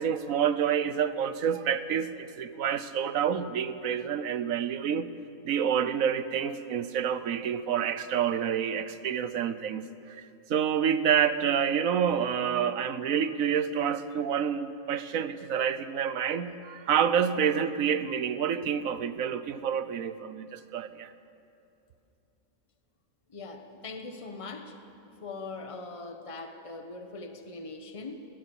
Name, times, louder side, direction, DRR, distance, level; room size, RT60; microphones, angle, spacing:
voice 1, 0.0-5.1 5.4-9.9 10.2-21.1, right 8 dB, 75° right, 13 dB, 1.2 m, -28 dB
voice 2, 23.3-24.8 25.2-28.3, left 3 dB, 25° left, 6 dB, 1.3 m, -41 dB
21.0 x 17.5 x 7.1 m, 2.7 s
omnidirectional pair, 1.4 m